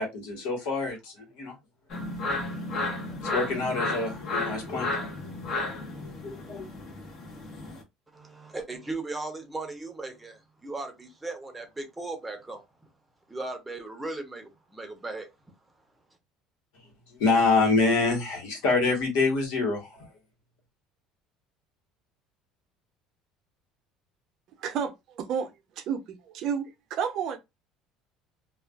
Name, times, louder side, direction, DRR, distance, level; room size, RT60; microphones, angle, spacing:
voice 1, 0.0-1.5 3.2-5.1 5.6-5.8 6.2-6.7 17.1-20.1, left 3 dB, 85° left, 1.3 m, -26 dB
sound 1, 1.9-7.8, left 2 dB, 50° left, 1.0 m, -33 dB
voice 2, 8.1-12.6 13.3-15.3, right 2 dB, 10° right, 0.7 m, -37 dB
voice 3, 24.6-25.5 25.8-26.0 26.3-27.4, right 7 dB, 55° right, 0.6 m, -30 dB
2.4 x 2.4 x 2.3 m
cardioid pair, 135°, 0 cm